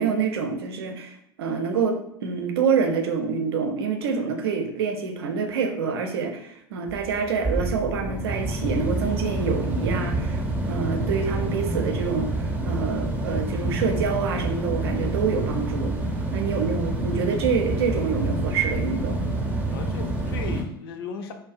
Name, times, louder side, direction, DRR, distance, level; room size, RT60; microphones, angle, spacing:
voice 1, 0.0-10.4 10.7-15.9 16.3-19.3, right 5 dB, 70° right, 4 dB, 0.4 m, -26 dB
sound 1, 6.9-20.6, right 2 dB, 10° right, 0.5 m, -27 dB
voice 2, 16.4-16.9 19.7-21.3, left 5 dB, 65° left, 6 dB, 0.4 m, -37 dB
2.3 x 2.2 x 2.5 m, 0.74 s
hypercardioid pair, 80°, 13 cm